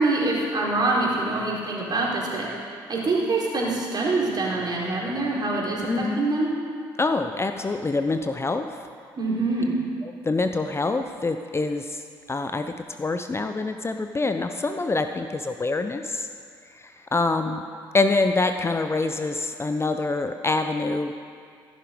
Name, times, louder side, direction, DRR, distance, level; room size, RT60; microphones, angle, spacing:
voice 1, 0.0-6.5 9.2-9.8, right 2 dB, 40° right, -4 dB, 4.1 m, -25 dB
voice 2, 5.9-6.3 7.0-8.6 10.0-12.0 12.3-12.7 13.0-16.3 16.7-17.6 17.9-21.1, left 3 dB, 20° left, 7 dB, 0.7 m, -25 dB
14.0 x 11.5 x 5.2 m, 2.2 s
figure-of-eight pair, 50°, 11 cm